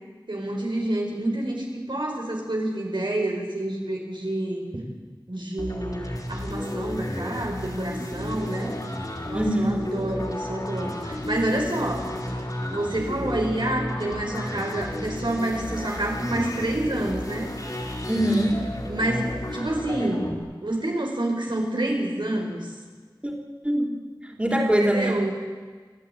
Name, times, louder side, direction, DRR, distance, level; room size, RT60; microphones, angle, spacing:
voice 1, 0.3-4.6 5.3-8.8 9.3-12.1 12.7-17.5 18.9-20.4 20.6-22.7 24.8-25.5, right 1 dB, 80° right, 0 dB, 5.4 m, -28 dB
sound 1, 5.6-20.3, left 1 dB, 50° left, 4.7 m, -32 dB
voice 2, 9.3-9.8 18.1-18.6 23.2-23.3 23.6-23.9 24.2-25.2, right 1 dB, 15° right, 0 dB, 3.9 m, -23 dB
29.0 x 11.5 x 9.5 m, 1.5 s
wide cardioid pair, 40°, 8 cm